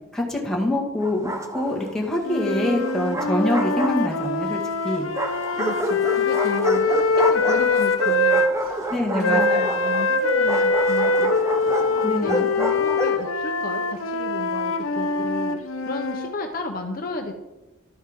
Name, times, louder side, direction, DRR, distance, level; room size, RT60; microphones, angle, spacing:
voice 1, 0.1-5.1 8.9-10.0 12.0-12.4, left 1 dB, ahead, -3 dB, 1.8 m, -25 dB
Bark, 1.0-1.9 2.8-4.4 5.1-13.3, right 1 dB, 15° right, 0.8 m, -29 dB
sound 1, 2.2-8.5 9.2-16.3, left 3 dB, 80° left, 0.8 m, -23 dB
voice 2, 5.5-8.7 9.0-11.3 11.9-17.3, left 2 dB, 45° left, 4 dB, 0.9 m, -33 dB
12.0 x 8.9 x 3.7 m, 1.0 s
head